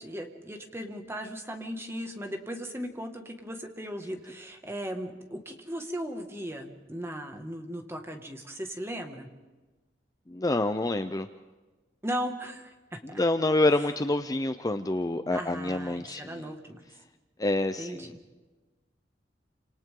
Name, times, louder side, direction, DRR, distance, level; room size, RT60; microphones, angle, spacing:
voice 1, 0.0-9.3 12.0-13.2 15.3-16.8 17.8-18.2, equal, 15° right, 4 dB, 2.0 m, -37 dB
voice 2, 10.3-11.3 13.0-16.5 17.4-18.1, left 2 dB, 20° left, 9 dB, 0.6 m, -27 dB
29.5 x 27.0 x 3.8 m, 1.2 s
head